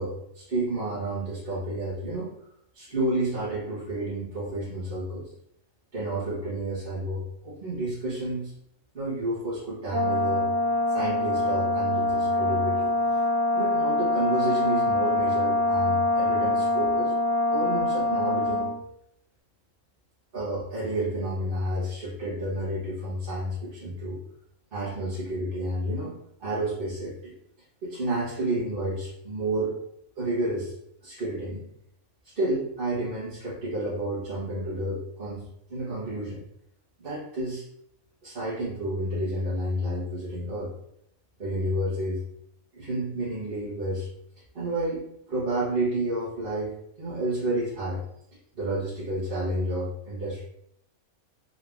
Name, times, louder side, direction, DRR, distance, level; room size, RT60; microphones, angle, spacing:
voice 1, 0.0-2.3 2.7-5.3 5.9-8.5 8.9-10.5 10.9-12.9 13.5-17.1 17.5-18.8 20.3-24.2 24.7-26.1 26.4-27.4 27.8-29.8 30.2-30.7 31.0-31.6 32.3-36.4 37.0-37.6 38.2-40.7 41.4-42.2 42.7-44.1 44.5-48.0 48.6-50.4, right 1 dB, 40° right, -11 dB, 1.4 m, -30 dB
Brass instrument, 9.9-18.8, left 2 dB, 75° right, 1.1 m, -24 dB
3.9 x 2.8 x 3.5 m, 0.73 s
omnidirectional pair, 1.5 m